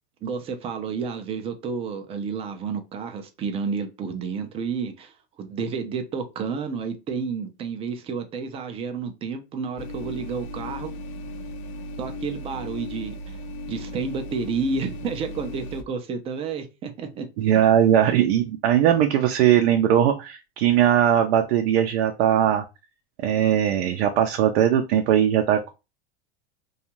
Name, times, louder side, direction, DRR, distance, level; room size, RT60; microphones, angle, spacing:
voice 1, 0.2-10.9 12.0-13.4 13.7-17.3, right 5 dB, 20° right, 0.3 m, -30 dB
sound 1, 9.8-15.8, left 1 dB, 40° left, 0.5 m, -36 dB
voice 2, 17.4-22.6 23.2-25.7, right 10 dB, 75° right, 0.5 m, -20 dB
2.5 x 2.3 x 2.9 m
supercardioid pair, 130°, 32 cm